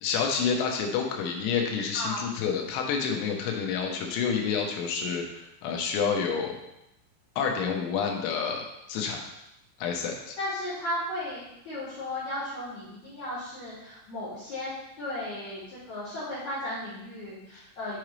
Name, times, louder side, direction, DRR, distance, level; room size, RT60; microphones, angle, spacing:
voice 1, 0.0-6.6 7.4-9.2 9.8-10.4, left 6 dB, 90° left, 1 dB, 3.3 m, -29 dB
voice 2, 1.9-2.3 10.4-14.7 15.0-18.0, left 1 dB, 45° left, -13 dB, 2.8 m, -35 dB
7.8 x 4.9 x 3.2 m, 0.86 s
omnidirectional pair, 5.3 m